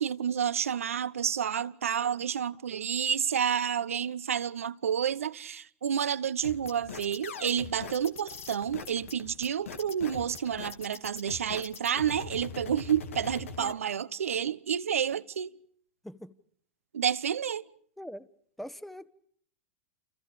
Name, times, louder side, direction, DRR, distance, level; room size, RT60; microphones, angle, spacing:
voice 1, 0.0-15.5 16.9-17.6, right 8 dB, 85° right, 1.0 m, -30 dB
sound 1, 6.4-13.7, left 5 dB, 80° left, 2.5 m, -41 dB
voice 2, 18.0-18.3 18.6-19.1, equal, ahead, 1.6 m, -42 dB
30.0 x 29.5 x 5.0 m
hypercardioid pair, 95°, 7 cm